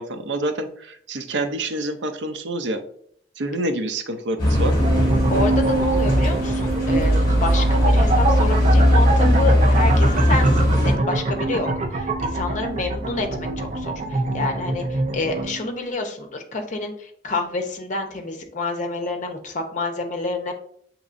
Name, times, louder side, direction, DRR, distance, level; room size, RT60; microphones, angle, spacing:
voice 1, 0.0-2.8 3.4-4.8, right 1 dB, 90° right, 9 dB, 0.6 m, -27 dB
sound 1, 4.4-10.9, equal, 25° left, 2.0 m, -18 dB
sound 2, 4.8-15.7, right 2 dB, 40° right, 0.5 m, -24 dB
voice 2, 5.3-20.5, left 2 dB, 45° left, 4 dB, 0.7 m, -28 dB
7.0 x 3.0 x 2.5 m, 0.64 s
head